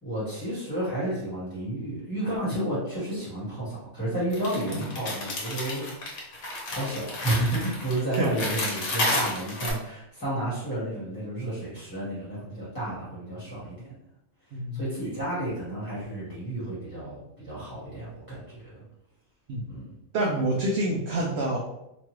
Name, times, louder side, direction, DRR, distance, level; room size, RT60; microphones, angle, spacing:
voice 1, 0.0-5.8 6.7-13.9 14.7-18.8 19.7-19.9, right 1 dB, 10° left, -10 dB, 1.0 m, -31 dB
sound 1, 4.3-9.7, left 2 dB, 80° left, 1.2 m, -31 dB
voice 2, 14.5-14.8 19.5-19.6 20.1-21.6, right 1 dB, 65° right, -2 dB, 0.7 m, -27 dB
2.9 x 2.3 x 3.0 m, 0.85 s
omnidirectional pair, 1.4 m